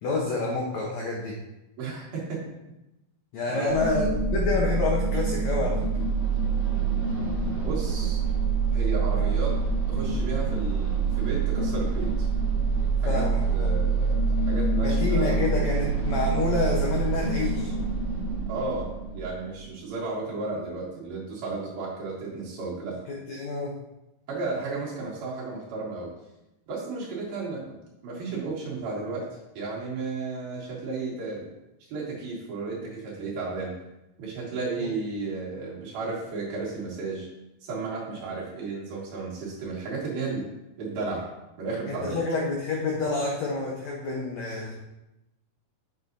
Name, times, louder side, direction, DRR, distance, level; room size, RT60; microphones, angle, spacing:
voice 1, 0.0-1.3 3.3-5.7 9.1-9.2 13.0-13.7 14.8-17.7 23.3-23.7 34.8-34.9 41.9-44.7, left 3 dB, 85° left, -3 dB, 1.5 m, -28 dB
voice 2, 1.8-2.4 3.5-4.1 7.6-8.2 8.7-9.5 9.9-12.3 13.0-15.6 18.5-23.0 24.3-26.1 26.7-27.8 28.0-29.3 29.6-31.5 31.9-33.7 34.2-37.3 37.6-40.5 40.8-41.3 41.6-42.2, right 3 dB, 70° right, -5 dB, 3.6 m, -33 dB
sound 1, 3.7-19.6, right 4 dB, 30° right, 1.5 m, -26 dB
7.9 x 7.1 x 2.7 m, 0.92 s
omnidirectional pair, 4.6 m